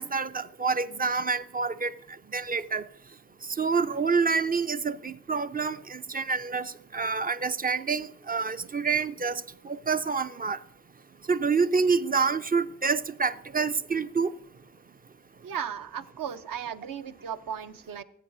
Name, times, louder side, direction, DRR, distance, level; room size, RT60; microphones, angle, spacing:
voice 1, 0.0-1.9 2.3-2.9 3.6-10.6 11.3-14.3, right 5 dB, 25° right, 0.4 m, -27 dB
voice 2, 15.4-18.0, right 8 dB, 60° right, 0.7 m, -36 dB
15.0 x 8.5 x 2.6 m
supercardioid pair, 40°, 38 cm